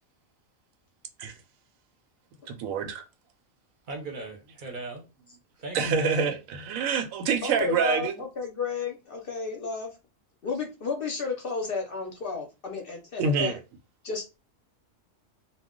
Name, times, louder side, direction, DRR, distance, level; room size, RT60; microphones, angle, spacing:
voice 1, 2.5-3.0 5.7-8.1 13.2-13.6, right 5 dB, 85° right, 1.0 m, -26 dB
voice 2, 3.9-5.1 5.6-6.3, right 2 dB, 45° right, 0.7 m, -38 dB
voice 3, 7.4-9.9 10.4-13.6 14.0-14.2, left 5 dB, 55° left, 0.7 m, -32 dB
2.3 x 2.1 x 3.6 m
omnidirectional pair, 1.4 m